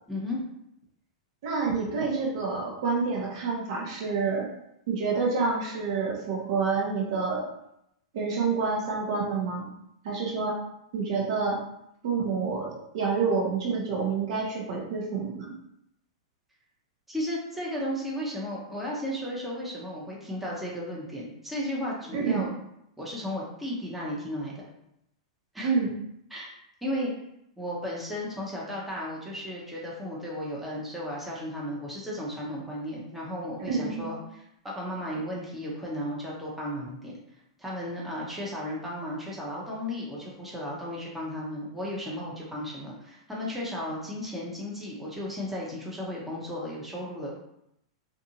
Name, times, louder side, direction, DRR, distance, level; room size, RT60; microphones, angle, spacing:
voice 1, 0.1-0.4 17.1-22.5 23.0-24.7 25.5-25.7 26.3-27.1 27.6-34.4 34.7-37.1 37.6-47.4, left 1 dB, 5° right, -5 dB, 0.8 m, -34 dB
voice 2, 1.4-4.5 4.9-7.5 8.1-9.7 10.0-10.6 10.9-11.6 12.0-15.5 22.1-22.5 25.6-25.9 33.7-34.1, right 4 dB, 60° right, -3 dB, 0.9 m, -28 dB
2.6 x 2.5 x 2.8 m, 0.79 s
hypercardioid pair, 110°, 3 cm